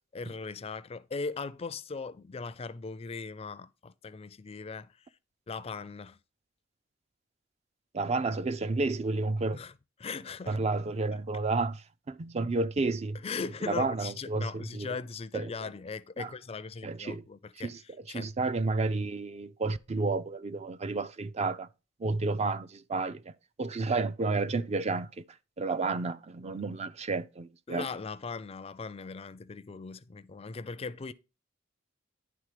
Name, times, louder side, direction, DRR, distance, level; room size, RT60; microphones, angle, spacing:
voice 1, 0.1-4.9 5.5-6.2 9.5-9.7 10.0-10.6 13.2-17.7 18.1-18.3 27.7-31.1, left 4 dB, 30° left, 0.4 m, -39 dB
voice 2, 7.9-9.6 10.5-13.2 13.7-15.0 15.3-15.7 16.2-16.3 16.8-17.3 17.6-21.7 22.0-23.3 23.6-25.2 25.6-27.9, right 3 dB, 35° right, 0.4 m, -31 dB
10.5 x 3.7 x 4.9 m
head